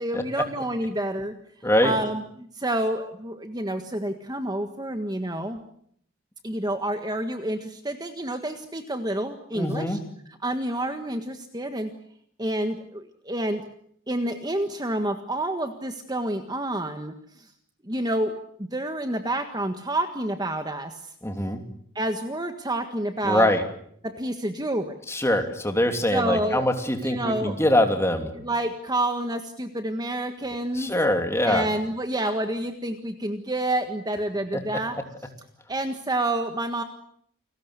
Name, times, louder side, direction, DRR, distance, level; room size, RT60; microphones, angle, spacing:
voice 1, 0.0-1.3 1.8-5.6 6.4-10.0 10.4-11.9 12.4-13.6 14.1-17.5 17.8-21.1 21.9-23.5 24.0-25.0 25.9-26.7 27.0-27.6 28.4-30.9 31.4-35.0 35.7-36.8, right 1 dB, 20° right, 7 dB, 1.6 m, -28 dB
voice 2, 1.6-1.9 9.5-10.0 21.2-21.6 23.2-23.6 25.1-28.3 30.7-31.7 34.5-34.6, left 1 dB, 10° left, 5 dB, 3.1 m, -23 dB
29.5 x 20.5 x 8.3 m, 0.67 s
head